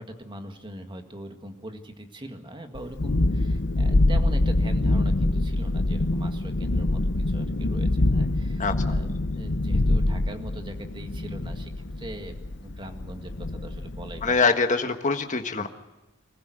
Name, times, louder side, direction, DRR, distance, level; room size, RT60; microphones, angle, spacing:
voice 1, 0.0-12.3 12.6-14.4 15.6-15.7, right 1 dB, 25° right, 6 dB, 2.0 m, -41 dB
Thunderstorm, 2.7-14.3, left 2 dB, 60° left, 0.9 m, -25 dB
voice 2, 14.2-15.7, left 4 dB, 35° left, 6 dB, 1.5 m, -23 dB
26.0 x 15.0 x 7.9 m, 1.1 s
head